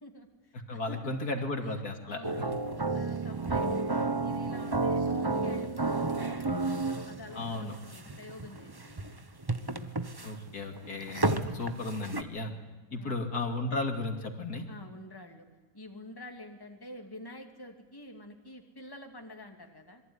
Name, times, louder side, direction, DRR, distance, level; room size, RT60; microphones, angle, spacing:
voice 1, 0.0-2.6 2.9-9.2 12.9-13.2 14.7-15.5 15.7-20.0, left 1 dB, 15° left, 3 dB, 2.5 m, -49 dB
voice 2, 0.7-2.2 7.4-7.8 10.2-12.5 12.9-14.6, left 2 dB, 70° left, 4 dB, 3.1 m, -34 dB
sound 1, 2.2-12.2, right 3 dB, 15° right, 1.0 m, -31 dB
26.5 x 22.5 x 9.6 m, 1.2 s
omnidirectional pair, 1.7 m